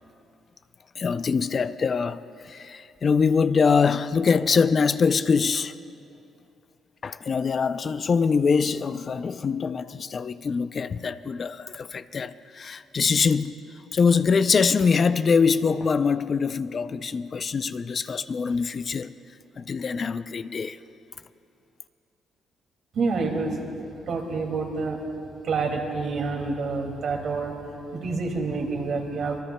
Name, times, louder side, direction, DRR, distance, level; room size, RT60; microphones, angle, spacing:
voice 1, 1.0-5.7 7.0-13.6 13.9-19.1 19.6-20.8, left 5 dB, 45° left, 0.4 m, -23 dB
voice 2, 22.9-23.7 24.1-25.0 25.4-27.6 27.9-29.4, right 4 dB, 65° right, 2.3 m, -28 dB
26.5 x 20.0 x 2.2 m
cardioid pair, 90°, 0 cm